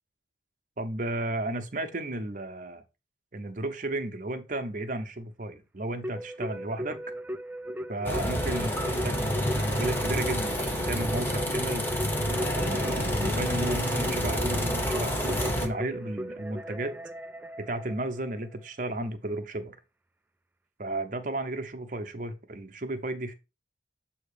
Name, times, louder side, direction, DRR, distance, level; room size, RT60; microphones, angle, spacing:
voice 1, 0.8-2.8 3.3-7.0 7.9-11.9 12.5-17.0 17.6-19.8 20.8-23.3, right 2 dB, 45° right, 0.7 m, -34 dB
Keyboard (musical), 6.0-18.5, equal, 10° right, 0.4 m, -37 dB
sound 1, 8.0-15.7, equal, 10° left, 0.9 m, -28 dB
7.5 x 2.9 x 4.9 m
head